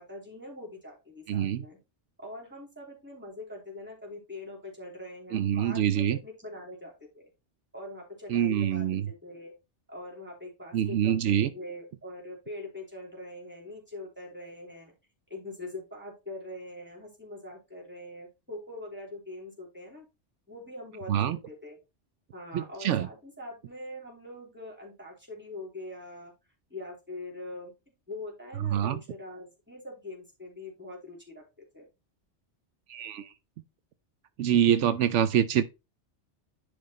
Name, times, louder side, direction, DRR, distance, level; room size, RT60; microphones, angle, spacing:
voice 1, 0.0-1.8 2.2-7.3 7.7-9.5 9.9-14.9 15.3-20.1 20.5-21.8 22.3-26.3 26.7-27.7 28.1-31.4 31.7-31.9, left 1 dB, 10° right, 3.0 m, -43 dB
voice 2, 1.3-1.6 5.3-6.2 8.3-9.0 10.7-11.5 21.1-21.4 22.5-23.1 28.7-29.0 32.9-33.3 34.4-35.6, right 10 dB, 85° right, 1.0 m, -25 dB
10.5 x 3.5 x 4.2 m
omnidirectional pair, 1.2 m